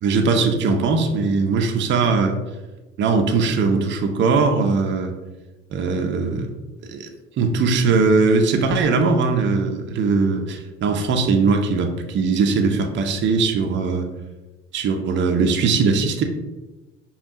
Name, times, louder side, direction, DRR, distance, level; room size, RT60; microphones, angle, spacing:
voice 1, 0.0-2.4 3.0-5.1 5.7-6.5 6.9-7.1 7.4-14.1 14.7-16.2, right 4 dB, 35° right, 4 dB, 0.5 m, -20 dB
5.1 x 2.3 x 2.6 m, 1.1 s
figure-of-eight pair, 60°, 35 cm